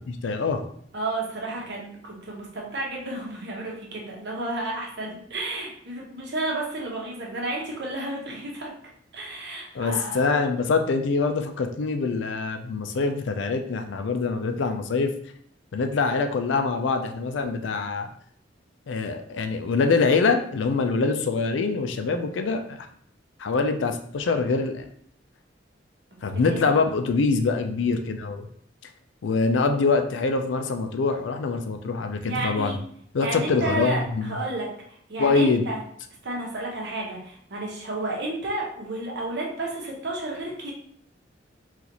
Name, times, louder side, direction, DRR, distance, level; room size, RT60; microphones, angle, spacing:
voice 1, 0.1-0.6 9.7-15.1 15.7-18.1 18.9-22.8 23.4-24.8 26.2-28.5 29.2-32.8 33.1-34.4 35.2-35.7, left 4 dB, 75° left, 6 dB, 0.4 m, -24 dB
voice 2, 0.9-8.7 9.1-10.3 26.4-26.7 32.2-32.8 33.2-34.7 35.1-35.8 36.2-40.7, right 2 dB, 65° right, -2 dB, 1.0 m, -32 dB
3.9 x 2.5 x 2.9 m, 0.64 s
head